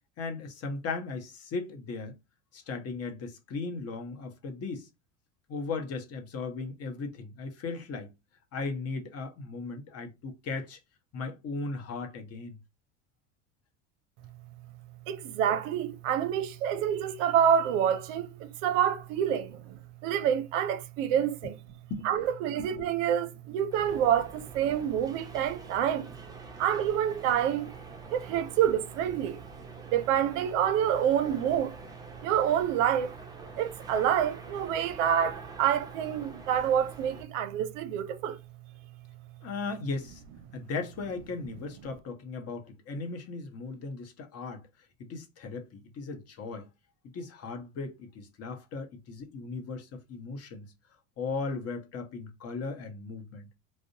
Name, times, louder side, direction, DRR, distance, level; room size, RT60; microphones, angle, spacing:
voice 1, 0.2-2.2 2.5-4.9 5.5-8.1 8.5-10.8 11.1-12.6 21.4-21.5 21.9-22.1 22.6-22.7 39.4-40.2 40.5-44.6 45.0-46.7 47.1-50.7 51.2-53.5, left 4 dB, 40° left, 0.7 m, -37 dB
voice 2, 15.1-21.6 22.0-26.1 26.6-27.7 28.1-29.4 29.9-31.8 32.2-33.2 33.6-38.4, right 9 dB, 70° right, 0.5 m, -27 dB
sound 1, 23.7-37.2, right 3 dB, 10° right, 0.5 m, -47 dB
2.4 x 2.1 x 2.7 m
hypercardioid pair, 90°, 39 cm